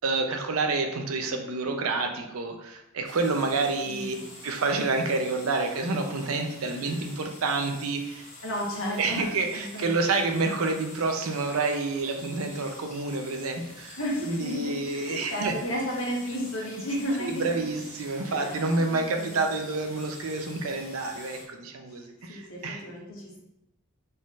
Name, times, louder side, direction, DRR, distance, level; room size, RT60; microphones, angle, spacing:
voice 1, 0.0-4.2 4.4-8.3 9.0-15.5 17.2-22.8, right 3 dB, 75° right, 4 dB, 0.6 m, -28 dB
sound 1, 3.0-21.4, left 2 dB, 35° left, 1.1 m, -47 dB
voice 2, 3.9-4.2 6.7-7.0 8.4-10.1 14.0-17.6 18.3-19.4 21.9-22.0 22.3-23.4, equal, 70° left, -2 dB, 1.1 m, -33 dB
4.2 x 3.8 x 2.4 m, 0.86 s
head